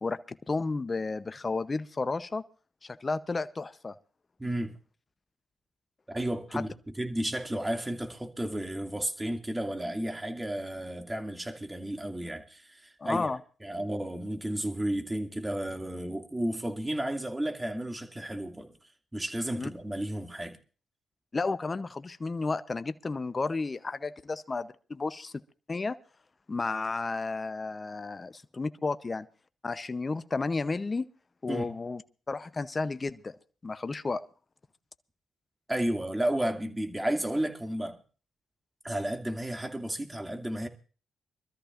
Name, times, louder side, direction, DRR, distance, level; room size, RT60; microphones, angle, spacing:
voice 1, 0.0-2.4 2.8-3.9 6.5-6.6 13.0-13.4 19.5-19.7 21.3-25.3 25.7-26.0 26.5-29.3 29.6-31.1 31.4-32.0 32.3-33.4 33.6-34.2, left 3 dB, 35° left, 0.7 m, -32 dB
voice 2, 4.4-4.7 6.1-6.7 7.0-13.3 13.6-18.7 19.1-20.6 31.5-31.7 35.7-38.0 38.8-40.7, right 1 dB, 15° right, 2.3 m, -32 dB
25.5 x 13.5 x 2.5 m
supercardioid pair, 50°, 0 cm